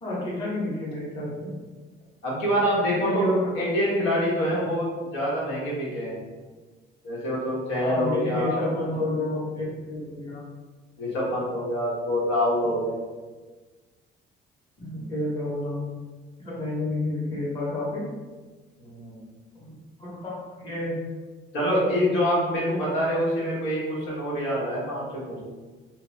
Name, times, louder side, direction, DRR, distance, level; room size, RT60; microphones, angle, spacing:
voice 1, 0.0-1.5 3.0-3.5 7.8-10.4 14.8-15.8 16.4-18.0 20.0-21.0 22.7-22.8, left 1 dB, 25° left, -7 dB, 0.9 m, -29 dB
voice 2, 2.2-6.2 7.0-8.8 11.0-13.0 15.0-15.1 18.8-19.2 21.5-25.4, equal, 90° left, -6 dB, 1.3 m, -26 dB
3.3 x 2.2 x 3.2 m, 1.3 s
cardioid pair, 170°, 19 cm